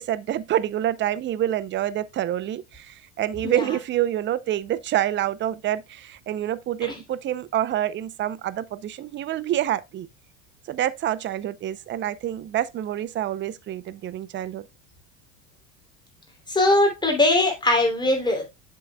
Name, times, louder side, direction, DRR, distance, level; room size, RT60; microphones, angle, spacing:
voice 1, 0.0-10.1 10.7-14.7, right 12 dB, 30° right, 0.6 m, -27 dB
voice 2, 16.5-18.5, left 2 dB, 10° left, 3.0 m, -21 dB
7.6 x 7.5 x 2.2 m
supercardioid pair, 110°, 41 cm